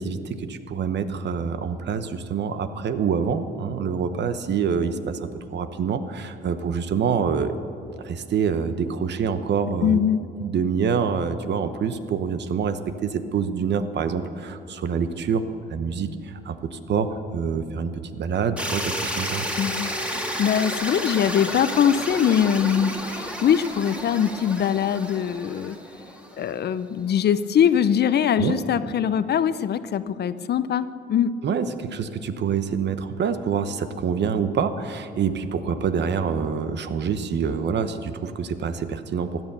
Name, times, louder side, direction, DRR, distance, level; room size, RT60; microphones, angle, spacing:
voice 1, 0.0-7.5 8.0-10.0 10.4-15.4 15.7-19.5 28.4-28.6 31.4-39.4, right 6 dB, 60° right, 10 dB, 1.0 m, -26 dB
voice 2, 9.8-10.2 19.6-25.8 26.4-31.3, left 8 dB, 55° left, 14 dB, 0.6 m, -22 dB
sound 1, 18.6-26.6, equal, 5° right, 1.9 m, -31 dB
16.0 x 10.5 x 6.8 m, 2.7 s
cardioid pair, 90°, 20 cm